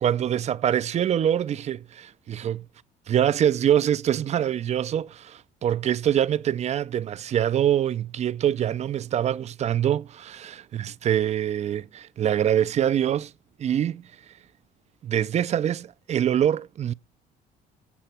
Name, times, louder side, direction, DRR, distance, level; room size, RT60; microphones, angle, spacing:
voice 1, 0.0-2.6 3.1-13.3 13.6-14.0 15.0-16.9, right 10 dB, 40° right, 0.4 m, -24 dB
16.0 x 5.9 x 4.3 m
cardioid pair, 110°, 17 cm